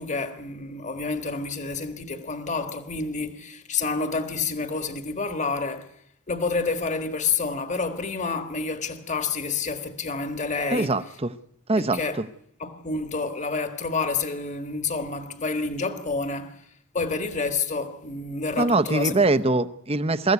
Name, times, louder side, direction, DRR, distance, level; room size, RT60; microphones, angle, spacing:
voice 1, 0.0-5.9 6.3-10.9 11.8-12.2 12.6-16.6 16.9-19.2, left 4 dB, 35° left, 1.6 m, -29 dB
voice 2, 10.7-11.3 11.7-12.3 18.6-20.3, right 2 dB, 25° right, 0.8 m, -23 dB
23.5 x 15.0 x 9.5 m
head